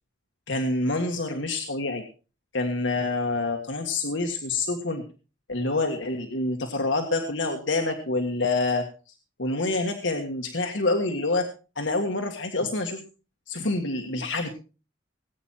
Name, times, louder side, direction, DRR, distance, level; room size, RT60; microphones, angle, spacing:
voice 1, 0.5-2.0 2.5-5.0 5.5-8.8 9.4-11.5 11.8-13.0 13.5-14.5, left 2 dB, 85° left, 4 dB, 1.7 m, -27 dB
19.5 x 8.9 x 4.4 m, 0.35 s
head